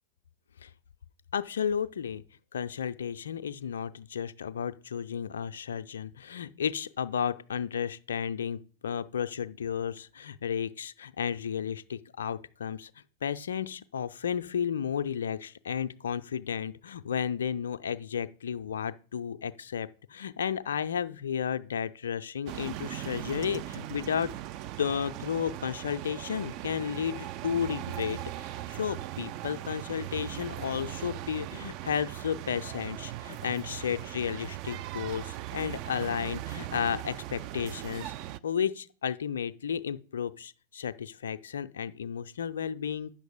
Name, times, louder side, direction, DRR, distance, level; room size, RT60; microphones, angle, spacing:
voice 1, 1.3-2.2 2.5-12.9 13.2-24.3 24.8-43.1, left 8 dB, 65° left, 0.4 m, -33 dB
sound 1, 22.5-38.4, right 14 dB, 40° right, 0.3 m, -39 dB
8.6 x 6.4 x 4.9 m
figure-of-eight pair, 90°, 0 cm